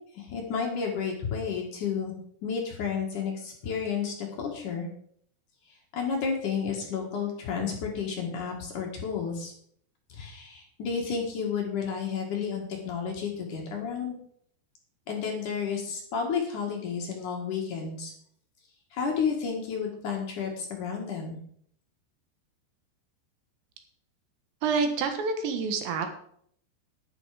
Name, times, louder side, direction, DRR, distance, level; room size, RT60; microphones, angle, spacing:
voice 1, 0.1-2.1 2.4-4.9 5.9-9.5 10.1-14.2 15.1-18.1 18.9-21.4, left 6 dB, 55° left, 0 dB, 3.0 m, -31 dB
voice 2, 24.6-26.1, right 5 dB, 80° right, 6 dB, 3.6 m, -27 dB
10.5 x 10.0 x 5.0 m, 0.64 s
omnidirectional pair, 5.0 m